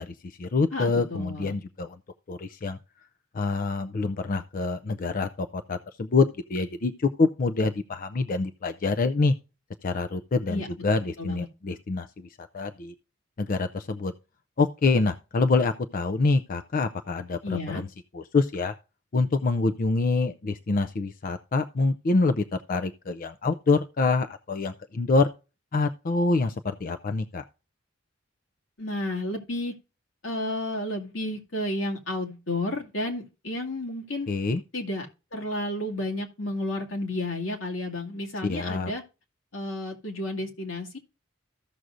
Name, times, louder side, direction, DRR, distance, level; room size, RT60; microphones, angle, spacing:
voice 1, 0.0-2.0 2.3-2.8 3.3-9.3 9.8-12.9 13.4-14.1 14.6-17.8 18.1-18.8 19.1-25.3 25.7-27.4 34.3-34.6 38.4-38.9, left 3 dB, 45° left, 0.5 m, -26 dB
voice 2, 0.7-1.6 10.5-10.7 11.2-11.5 17.4-17.8 28.8-29.7 30.2-34.3 34.7-35.1 35.3-39.0 39.5-41.0, left 1 dB, 85° left, 2.2 m, -31 dB
15.0 x 6.3 x 2.5 m
head